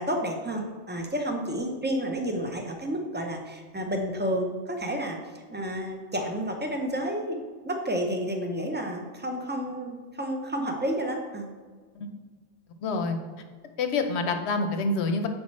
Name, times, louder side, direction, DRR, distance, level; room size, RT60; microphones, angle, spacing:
voice 1, 0.0-7.4 7.6-11.5, equal, 15° right, 2 dB, 0.4 m, -30 dB
voice 2, 12.8-13.2 13.8-15.3, left 3 dB, 70° left, 6 dB, 0.9 m, -27 dB
7.2 x 4.9 x 3.1 m, 1.5 s
omnidirectional pair, 1.2 m